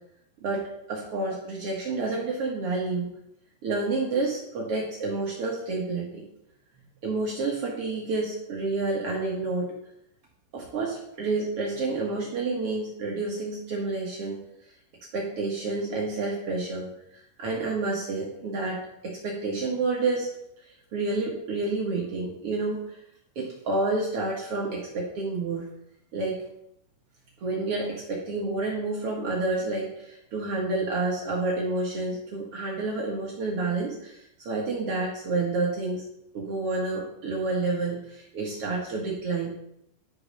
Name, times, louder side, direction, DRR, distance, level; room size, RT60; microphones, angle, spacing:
voice 1, 0.4-3.1 3.6-6.2 7.0-9.7 10.5-14.4 15.1-16.9 17.1-20.3 20.9-22.9 23.3-25.6 26.1-26.4 27.4-36.0 36.3-39.6, right 3 dB, 90° right, -3 dB, 1.2 m, -29 dB
11.0 x 5.1 x 5.5 m, 0.76 s
omnidirectional pair, 5.2 m